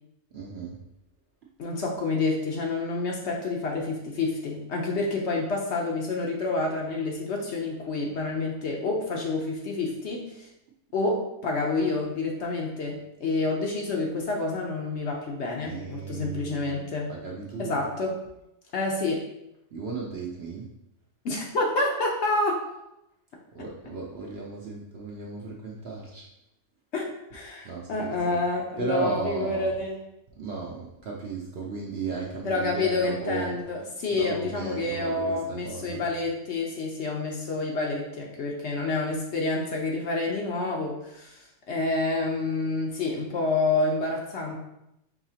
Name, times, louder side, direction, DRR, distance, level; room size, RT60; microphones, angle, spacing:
voice 1, 0.3-0.8 15.6-17.8 19.7-20.7 23.5-26.2 27.6-28.4 28.8-29.7 30.4-33.6 34.1-36.0, right 4 dB, 60° right, -2 dB, 0.7 m, -35 dB
voice 2, 1.6-10.5 10.9-17.1 17.6-18.2 18.7-19.2 21.2-22.6 26.9-27.1 27.3-30.0 32.4-41.4 41.7-44.6, left 3 dB, 60° left, 0 dB, 0.8 m, -28 dB
4.8 x 2.9 x 2.8 m, 0.85 s
omnidirectional pair, 1.5 m